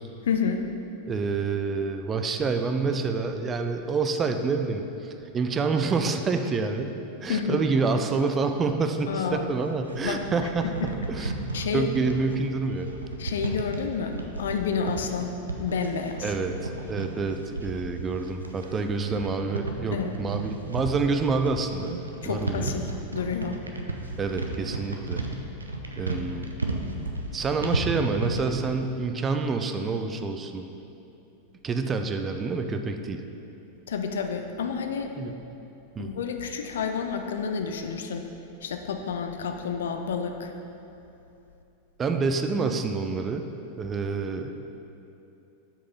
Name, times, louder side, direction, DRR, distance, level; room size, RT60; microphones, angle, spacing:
voice 1, 0.3-0.6 7.3-7.6 9.1-9.5 10.0-10.2 10.6-10.9 11.5-11.9 13.2-15.3 15.6-16.3 19.9-20.1 22.2-23.6 33.9-35.1 36.0-38.3 38.6-40.5, left 6 dB, 60° left, 5 dB, 0.5 m, -29 dB
voice 2, 1.1-6.9 7.2-11.3 11.7-12.9 16.2-22.0 22.2-22.8 24.2-25.2 26.0-26.5 27.3-30.6 31.6-33.2 35.2-35.3 36.0-36.1 42.0-43.5 43.8-44.5, right 4 dB, 20° right, 6 dB, 0.4 m, -27 dB
sound 1, 9.5-28.6, right 2 dB, 80° right, 0.5 m, -34 dB
5.5 x 4.8 x 5.3 m, 2.8 s
figure-of-eight pair, 90°, 0 cm